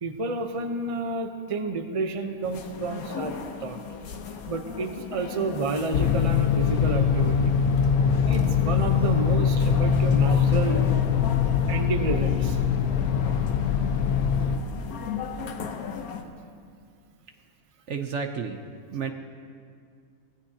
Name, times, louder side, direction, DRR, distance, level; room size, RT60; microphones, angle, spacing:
voice 1, 0.0-3.8 4.5-7.6 8.2-10.8 11.7-12.6, right 3 dB, 30° right, 6 dB, 0.7 m, -30 dB
sound 1, 2.4-16.2, left 6 dB, 75° left, 1.4 m, -37 dB
sound 2, 4.2-4.3 4.8-12.0, equal, 50° left, 2.2 m, -44 dB
sound 3, 5.9-14.6, left 7 dB, 90° left, 1.2 m, -22 dB
voice 2, 17.9-18.7 18.9-19.1, right 6 dB, 60° right, 5 dB, 0.9 m, -31 dB
23.5 x 17.0 x 2.8 m, 2.2 s
omnidirectional pair, 1.6 m